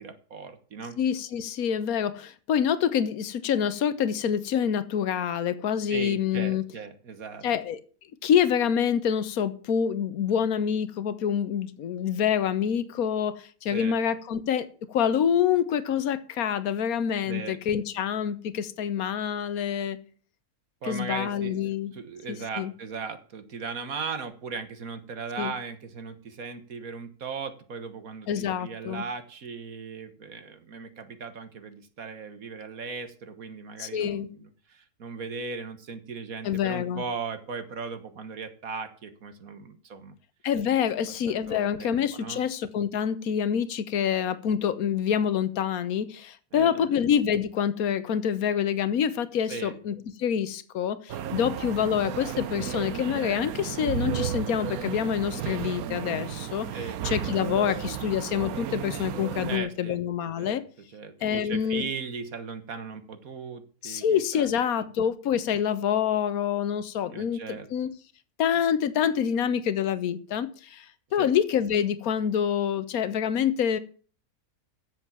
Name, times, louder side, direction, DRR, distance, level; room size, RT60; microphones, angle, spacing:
voice 1, 0.0-1.0 5.9-7.4 13.7-14.0 17.2-17.6 20.8-40.1 41.3-42.4 46.5-47.0 49.5-49.8 56.7-57.0 59.5-60.0 60.4-60.6 60.9-64.9 67.1-67.7 71.2-71.3, right 5 dB, 70° right, 1.8 m, -38 dB
voice 2, 1.0-6.6 7.4-7.8 8.2-20.0 20.9-21.9 22.6-22.7 25.4-25.5 28.3-29.0 33.8-34.3 36.4-37.0 40.4-56.7 57.0-60.6 61.2-61.8 63.8-67.9 68.4-73.8, left 8 dB, 80° left, 1.4 m, -26 dB
sound 1, 51.1-59.6, right 10 dB, 85° right, 1.2 m, -33 dB
10.0 x 7.7 x 7.3 m
omnidirectional pair, 1.5 m